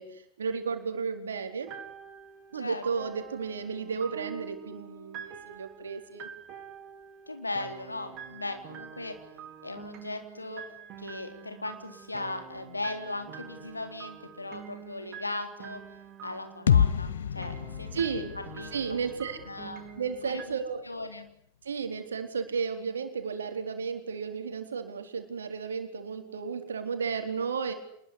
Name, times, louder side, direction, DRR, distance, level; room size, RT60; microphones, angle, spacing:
voice 1, 0.0-1.7 2.5-6.3 17.9-18.3 18.7-19.4 20.0-20.8 21.6-27.7, right 5 dB, 70° right, 6 dB, 4.3 m, -33 dB
sound 1, 1.7-20.4, right 8 dB, 35° right, 3.8 m, -46 dB
voice 2, 2.6-3.1 7.3-9.1 9.6-10.6 11.0-15.8 16.2-18.2 18.5-18.7 19.5-19.8 20.2-20.6 20.8-21.3, left 2 dB, 80° left, 6 dB, 3.9 m, -38 dB
sound 2, 16.7-20.5, left 8 dB, 65° left, 1.2 m, -29 dB
26.5 x 21.0 x 10.0 m, 0.70 s
figure-of-eight pair, 90°, 0 cm